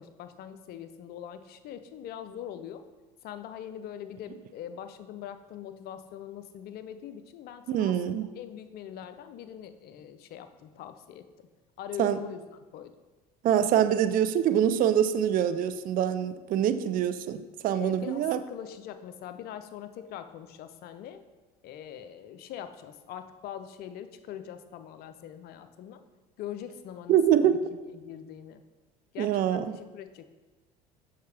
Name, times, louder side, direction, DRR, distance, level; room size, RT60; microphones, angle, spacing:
voice 1, 0.0-2.8 3.2-11.5 11.8-12.4 12.7-12.9 17.7-21.2 21.6-26.0 26.4-28.6 29.1-30.2, left 10 dB, 60° left, 10 dB, 0.6 m, -42 dB
voice 2, 7.7-8.3 12.0-12.2 13.4-18.4 27.1-27.6 29.2-29.6, right 10 dB, 50° right, 11 dB, 0.4 m, -25 dB
6.7 x 5.6 x 3.3 m, 1.2 s
hypercardioid pair, 80°, 18 cm